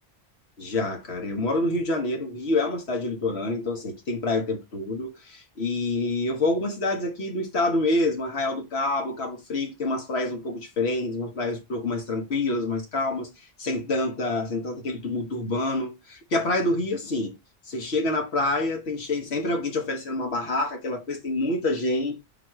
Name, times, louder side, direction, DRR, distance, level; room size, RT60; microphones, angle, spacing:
voice 1, 0.6-17.3 17.7-22.2, left 2 dB, 75° left, 1.2 m, -27 dB
4.0 x 2.5 x 4.4 m
omnidirectional pair, 1.1 m